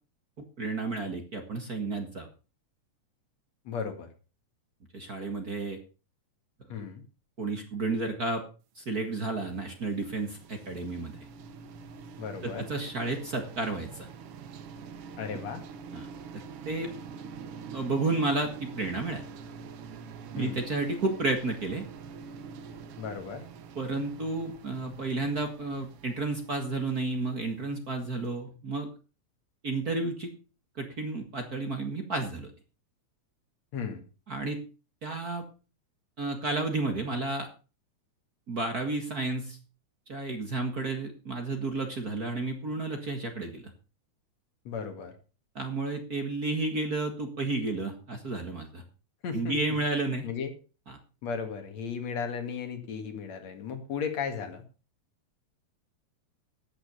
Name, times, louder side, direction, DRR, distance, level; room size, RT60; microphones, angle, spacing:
voice 1, 0.4-2.3 4.9-5.8 7.4-8.4 8.8-11.2 12.4-14.1 15.9-16.1 16.7-16.9 17.7-19.2 20.3-21.9 23.8-28.9 29.6-30.3 30.8-32.5 34.3-34.6 35.0-35.5 36.2-37.5 38.5-39.6 40.1-43.7 45.6-48.8 49.3-50.3 50.9-51.0, right 3 dB, 35° right, 4 dB, 1.9 m, -31 dB
voice 2, 3.6-4.1 6.7-7.0 12.2-12.7 15.2-15.6 20.4-20.6 23.0-23.4 33.7-34.0 44.6-45.1 49.2-49.5 50.2-50.5 51.2-54.6, left 6 dB, 65° left, 6 dB, 3.1 m, -35 dB
sound 1, 8.9-27.9, right 6 dB, 60° right, 1.7 m, -46 dB
13.5 x 9.0 x 5.4 m, 0.34 s
omnidirectional pair, 3.3 m